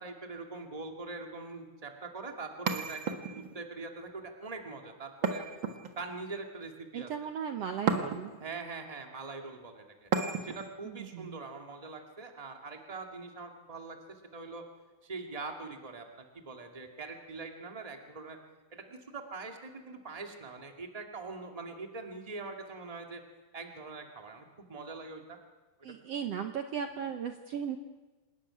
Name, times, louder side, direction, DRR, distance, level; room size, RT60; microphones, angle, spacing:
voice 1, 0.0-5.4 5.9-7.1 8.4-10.1 10.4-14.7 15.0-18.4 18.7-23.2 23.5-25.4, right 3 dB, 15° right, 3 dB, 1.3 m, -43 dB
sound 1, 2.7-3.6 5.2-6.2 7.9-8.5 10.1-10.7, right 5 dB, 50° right, 1.4 m, -33 dB
voice 2, 6.9-8.3 10.8-11.4 25.8-27.8, right 8 dB, 85° right, 6 dB, 1.4 m, -36 dB
26.5 x 13.0 x 9.9 m, 1.2 s
omnidirectional pair, 4.4 m